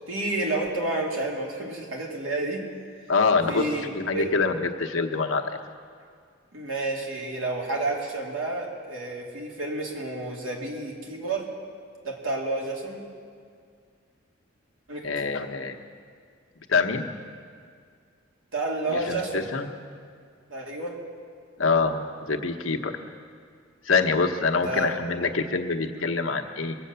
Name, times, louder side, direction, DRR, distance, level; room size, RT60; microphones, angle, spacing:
voice 1, 0.1-2.6 3.5-4.3 6.5-11.5 12.0-13.0 14.9-15.0 18.5-19.5 20.5-21.0 24.6-24.9, right 2 dB, 90° right, -1 dB, 2.6 m, -30 dB
voice 2, 3.1-5.5 15.0-15.8 16.7-17.1 18.9-19.7 21.6-22.9 23.8-26.8, left 4 dB, 85° left, 5 dB, 1.0 m, -25 dB
22.0 x 7.6 x 6.9 m, 2.1 s
head